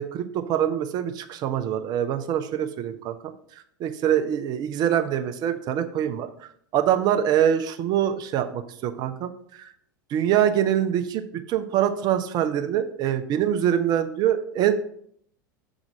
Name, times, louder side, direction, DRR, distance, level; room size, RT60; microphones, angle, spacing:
voice 1, 0.0-3.1 3.8-6.3 6.7-9.7 10.1-11.2 11.5-14.7, right 10 dB, 40° right, 8 dB, 0.8 m, -24 dB
7.3 x 3.8 x 6.2 m, 0.65 s
figure-of-eight pair, 85°, 11 cm